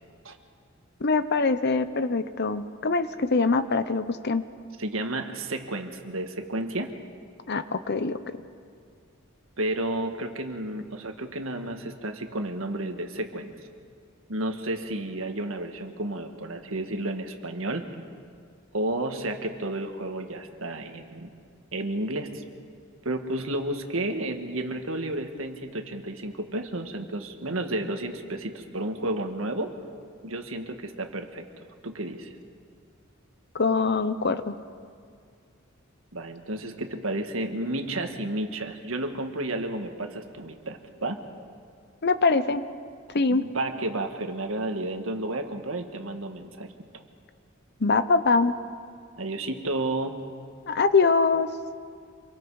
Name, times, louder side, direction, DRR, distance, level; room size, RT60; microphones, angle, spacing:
voice 1, 1.0-4.4 7.5-8.2 33.5-34.6 42.0-42.6 43.1-43.5 47.8-48.5 50.7-51.5, left 4 dB, 55° left, 12 dB, 0.9 m, -23 dB
voice 2, 4.8-6.9 9.6-13.5 14.3-17.9 18.7-21.3 21.7-22.4 23.0-29.8 30.2-31.4 31.8-32.3 36.1-41.2 43.3-46.7 46.9-47.0 49.2-50.3, right 1 dB, 80° right, 5 dB, 1.7 m, -31 dB
26.5 x 23.0 x 4.9 m, 2.2 s
head